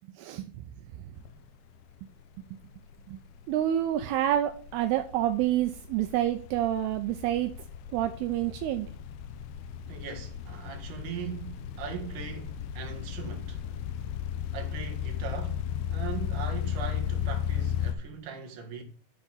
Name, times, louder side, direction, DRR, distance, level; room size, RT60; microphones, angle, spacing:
voice 1, 0.1-0.6 1.1-1.2 3.1-3.2 3.5-7.5 7.9-8.9, right 12 dB, 80° right, 2.4 m, -28 dB
sound 1, 1.2-1.5 1.8-17.9, left 9 dB, 80° left, 2.4 m, -35 dB
voice 2, 9.9-13.6 14.5-15.6 15.9-18.8, right 7 dB, 55° right, 2.9 m, -40 dB
13.0 x 4.4 x 7.1 m
omnidirectional pair, 5.0 m